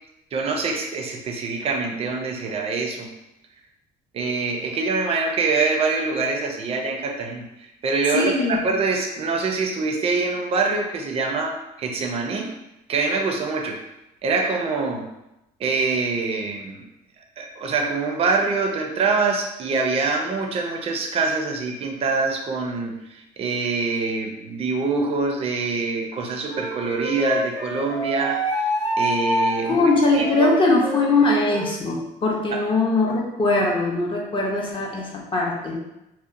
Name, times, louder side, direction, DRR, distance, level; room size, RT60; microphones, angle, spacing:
voice 1, 0.3-3.1 4.1-7.4 7.8-12.5 12.9-13.8 14.2-15.1 15.6-16.8 17.4-28.4 29.0-30.5 32.5-32.6, right 4 dB, 35° right, 2 dB, 0.4 m, -24 dB
voice 2, 8.1-8.6 29.7-35.8, left 3 dB, 30° left, -1 dB, 0.5 m, -21 dB
Wind instrument woodwind instrument, 26.5-31.8, equal, 50° left, 0.9 m, -27 dB
2.8 x 2.1 x 2.4 m, 0.90 s
cardioid pair, 110°, 17 cm